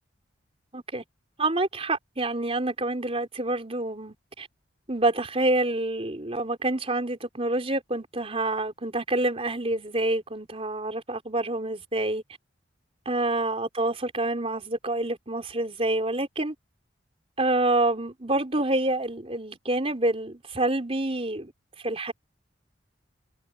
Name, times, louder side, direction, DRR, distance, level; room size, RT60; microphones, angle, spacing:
voice 1, 0.7-1.0 1.4-4.5 4.9-12.2 13.1-16.5 17.4-21.5 21.8-22.1, right 2 dB, 30° right, 4.2 m, -27 dB
head